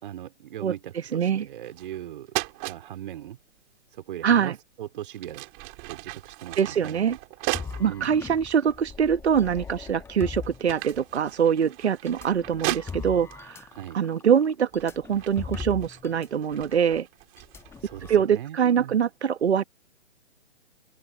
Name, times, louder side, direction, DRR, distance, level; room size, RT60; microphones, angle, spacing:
voice 1, 0.0-3.4 3.9-5.4 5.9-7.1 7.8-8.2 13.7-14.0 17.8-19.0, right 12 dB, 45° right, 3.8 m, -39 dB
voice 2, 0.6-1.5 4.2-4.5 6.6-7.2 7.8-13.7 13.9-17.1 18.1-19.6, right 8 dB, 65° right, 1.2 m, -24 dB
sound 1, 1.6-2.0 2.3-2.8 4.4-4.6 5.1-7.9 8.5-8.6 9.4-9.9 10.2-13.4 14.2-14.5 14.8-17.8, right 34 dB, 30° right, 4.8 m, -36 dB
sound 2, 7.5-11.4 12.1-16.3 16.5-16.7 17.4-18.2, left 5 dB, 5° left, 1.4 m, -40 dB
open air
figure-of-eight pair, 130°, 36 cm